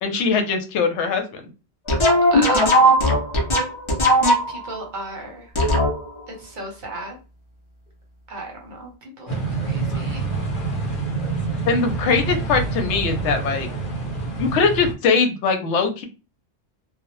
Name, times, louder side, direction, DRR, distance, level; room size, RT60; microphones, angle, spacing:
voice 1, 0.0-1.2 11.7-13.7 14.4-16.0, left 5 dB, 85° left, 6 dB, 0.9 m, -21 dB
sound 1, 1.9-4.7 5.5-6.2, equal, 35° left, 0.5 m, -17 dB
voice 2, 2.1-3.0 4.5-5.5 6.3-7.2 8.3-8.9 9.2-10.2, right 2 dB, 50° right, 1 dB, 0.8 m, -34 dB
sound 2, 9.3-14.9, right 4 dB, 50° left, 0.9 m, -26 dB
2.1 x 2.0 x 2.9 m, 0.31 s
omnidirectional pair, 1.1 m